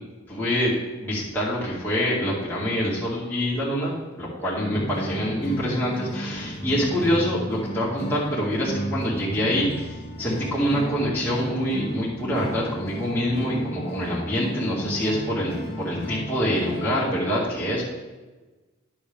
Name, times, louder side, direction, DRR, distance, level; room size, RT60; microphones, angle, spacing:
voice 1, 0.3-0.7 1.0-9.7 10.2-17.8, equal, 10° left, -8 dB, 2.2 m, -25 dB
sound 1, 4.7-17.0, equal, 50° left, 1.9 m, -34 dB
10.0 x 7.0 x 3.6 m, 1.2 s
head